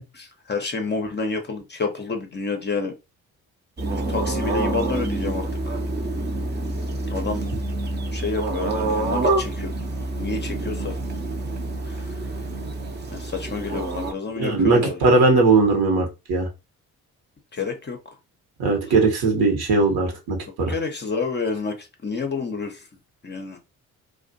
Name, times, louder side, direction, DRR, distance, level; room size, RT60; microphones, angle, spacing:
voice 1, 0.1-2.9 3.9-5.8 7.1-7.4 8.1-9.8 10.1-11.0 11.8-12.1 13.1-15.1 17.5-18.1 20.7-22.9 23.2-23.6, left 4 dB, 25° left, 0.6 m, -29 dB
sound 1, 3.8-14.1, right 2 dB, 25° right, 0.6 m, -27 dB
voice 2, 14.3-16.5 18.6-20.7, right 3 dB, 60° right, 1.0 m, -19 dB
2.4 x 2.2 x 2.6 m
hypercardioid pair, 45°, 43 cm